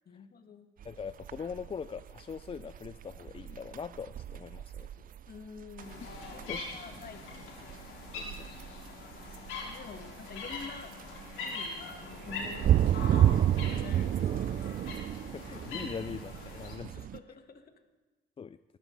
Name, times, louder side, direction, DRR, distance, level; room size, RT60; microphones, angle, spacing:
voice 1, 0.1-0.7 5.3-7.6 8.2-8.5 9.6-11.0 11.3-13.3 13.6-14.9 16.9-17.7, left 5 dB, 50° left, 6 dB, 1.8 m, -48 dB
voice 2, 0.8-5.1 6.4-6.6 8.1-8.6 15.3-17.1 18.4-18.6, left 6 dB, 30° left, 14 dB, 0.4 m, -42 dB
sound 1, 0.8-17.2, right 11 dB, 45° right, 0.4 m, -32 dB
sound 2, 5.8-16.7, left 3 dB, 85° left, 4.2 m, -43 dB
22.0 x 15.0 x 4.0 m, 1.2 s
cardioid pair, 90°, 20 cm